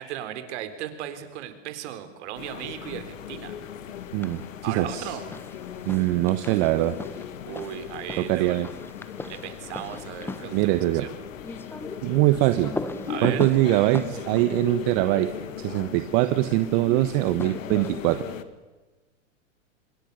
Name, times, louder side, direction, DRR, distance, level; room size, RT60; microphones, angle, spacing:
voice 1, 0.0-3.5 4.6-5.3 7.5-8.6 9.3-11.1 13.1-13.4, right 11 dB, 60° right, 9 dB, 3.8 m, -36 dB
sound 1, 2.3-18.4, left 9 dB, 80° left, 1.9 m, -38 dB
sound 2, 3.9-4.5 4.8-15.8 17.0-18.2, left 2 dB, 5° left, 1.2 m, -39 dB
voice 2, 4.1-5.1 5.8-6.9 8.2-8.7 10.5-11.0 12.0-12.7 13.2-15.3 15.6-18.2, right 17 dB, 45° right, 10 dB, 1.3 m, -23 dB
26.0 x 23.0 x 6.7 m, 1.2 s
hypercardioid pair, 120°, 38 cm